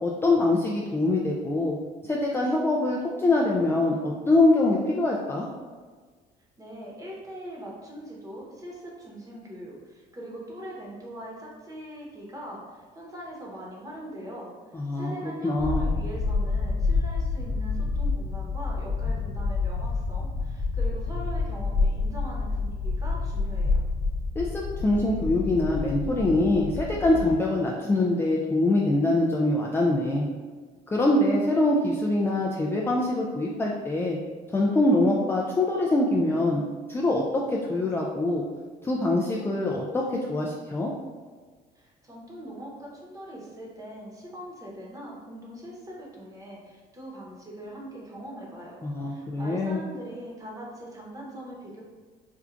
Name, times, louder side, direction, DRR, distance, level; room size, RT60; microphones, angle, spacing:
voice 1, 0.0-1.8 2.0-5.5 14.7-15.9 24.4-30.3 30.9-34.2 34.5-38.4 38.8-40.9 48.8-49.8, left 2 dB, 15° left, -3 dB, 0.3 m, -24 dB
voice 2, 6.6-23.8 41.7-51.8, right 1 dB, 20° right, -3 dB, 1.0 m, -41 dB
sound 1, 15.6-27.3, left 3 dB, 35° left, 0.9 m, -28 dB
4.5 x 2.4 x 2.4 m, 1.5 s
cardioid pair, 110°, 17 cm